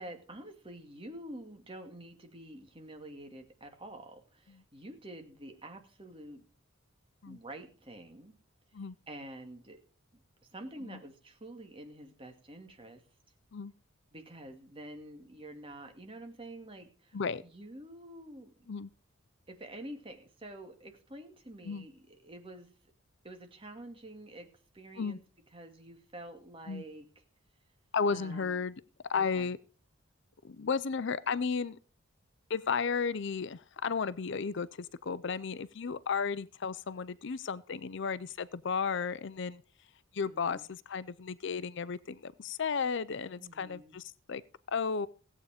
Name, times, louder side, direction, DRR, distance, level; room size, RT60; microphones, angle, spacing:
voice 1, 0.0-6.4 7.3-8.3 8.8-9.8 10.5-13.0 14.1-18.5 19.5-22.7 23.2-24.5 24.7-25.2 25.5-27.1 28.1-28.7 29.1-29.5 40.3-40.7 43.4-44.0, right 1 dB, 25° right, 2.4 m, -48 dB
voice 2, 27.9-28.7 29.1-29.6 30.4-31.8 32.5-34.7 35.0-39.6 40.1-44.4 44.7-45.1, left 5 dB, 60° left, 0.5 m, -33 dB
16.5 x 8.5 x 5.0 m
head